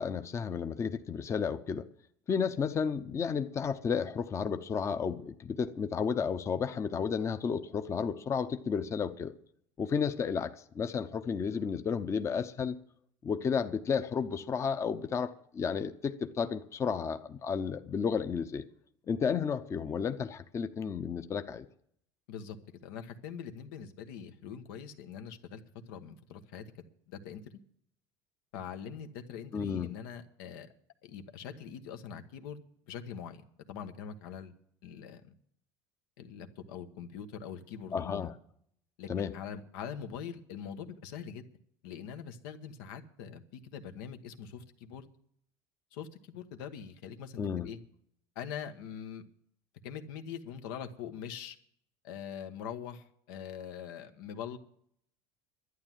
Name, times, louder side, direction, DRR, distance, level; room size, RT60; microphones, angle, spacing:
voice 1, 0.0-1.9 2.3-9.3 9.8-12.8 13.2-18.6 19.1-21.7 29.5-29.9 37.9-38.3 39.1-39.3 47.4-47.7, left 6 dB, 25° left, 0.7 m, -32 dB
voice 2, 22.3-25.6 25.9-26.7 27.1-27.5 28.5-30.7 31.0-32.6 32.9-34.5 34.8-35.3 36.2-38.3 39.0-41.5 41.8-45.1 45.9-47.8 48.3-49.2 49.8-51.6 52.0-54.6, left 8 dB, 90° left, 1.3 m, -43 dB
11.5 x 9.6 x 7.6 m
cardioid pair, 135°, 11 cm